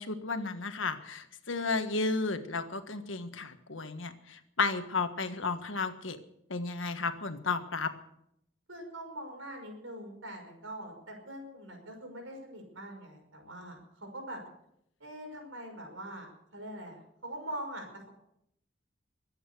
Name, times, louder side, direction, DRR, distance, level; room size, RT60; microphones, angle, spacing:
voice 1, 0.0-6.2 6.5-7.9, left 4 dB, 75° left, 8 dB, 1.5 m, -33 dB
voice 2, 8.7-14.4 15.0-18.1, right 1 dB, 80° right, 3 dB, 5.7 m, -43 dB
23.0 x 8.9 x 6.9 m, 0.78 s
head